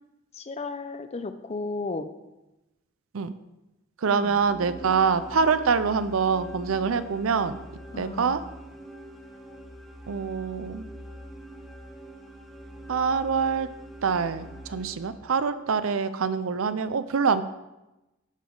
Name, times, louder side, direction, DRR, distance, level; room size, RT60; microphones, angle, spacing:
voice 1, 0.3-2.1 4.1-4.4 7.9-8.4, left 3 dB, 30° left, 10 dB, 0.5 m, -34 dB
voice 2, 4.0-7.6 8.0-8.4 10.1-10.9 12.9-13.7 14.0-17.4, right 5 dB, 75° right, 13 dB, 0.5 m, -25 dB
sound 1, 4.2-15.5, right 1 dB, ahead, 1.0 m, -44 dB
13.0 x 5.2 x 3.8 m, 0.99 s
head